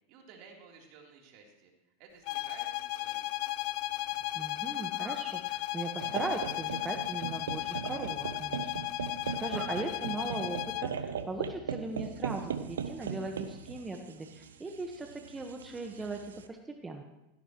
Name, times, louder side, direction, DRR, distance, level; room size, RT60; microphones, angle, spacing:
voice 1, 0.1-1.7 2.0-3.4, right 5 dB, 55° right, 0 dB, 3.7 m, -54 dB
sound 1, 2.3-11.0, left 17 dB, 55° left, 0.4 m, -35 dB
Fowl, 3.5-10.8, right 4 dB, 35° right, 2.7 m, -57 dB
voice 2, 4.3-8.8 9.4-17.0, right 3 dB, 15° right, 3 dB, 1.5 m, -39 dB
sound 2, 6.0-16.4, right 7 dB, 80° right, 1.0 m, -39 dB
17.0 x 16.0 x 3.2 m, 0.95 s
hypercardioid pair, 90°, 0 cm